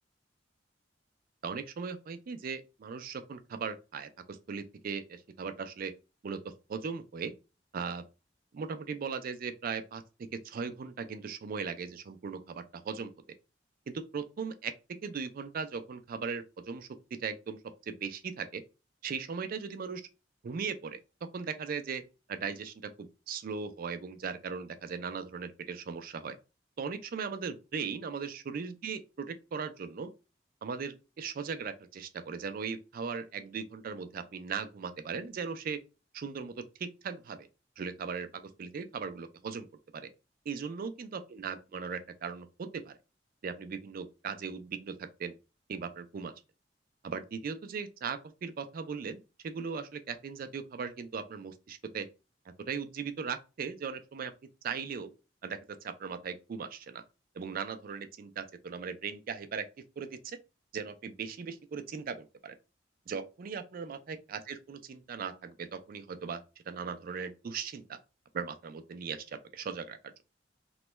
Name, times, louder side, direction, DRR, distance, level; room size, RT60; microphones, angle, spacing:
voice 1, 1.4-5.9 6.2-7.3 7.7-8.0 8.5-10.0 10.3-13.1 13.9-14.7 15.0-16.9 17.2-17.6 17.9-18.6 19.0-20.0 20.4-21.0 21.3-22.0 22.3-26.4 26.8-30.1 30.6-35.8 36.1-37.4 37.8-39.7 39.9-40.1 40.5-42.9 43.4-44.9 45.2-45.3 45.7-46.3 47.0-52.1 52.7-54.3 54.6-55.1 55.4-57.0 57.3-59.7 60.0-60.4 60.7-62.6 63.1-68.0 68.3-70.1, right 5 dB, 50° right, 0.4 m, -38 dB
3.0 x 2.2 x 3.0 m
head